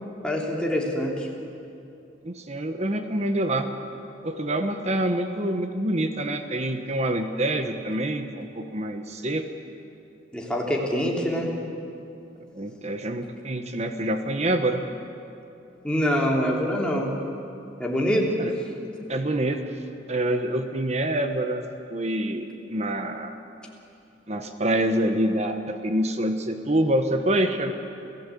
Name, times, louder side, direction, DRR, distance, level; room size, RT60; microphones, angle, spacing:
voice 1, 0.2-1.3 10.3-11.5 15.8-17.1 17.8-18.3, equal, 5° left, -2 dB, 3.2 m, -25 dB
voice 2, 2.2-3.7 4.2-9.5 12.5-14.8 18.4-18.6 19.1-19.8 20.1-21.6 21.9-23.4 24.3-27.7, right 1 dB, 35° right, 7 dB, 1.2 m, -26 dB
28.5 x 16.0 x 8.5 m, 2.7 s
head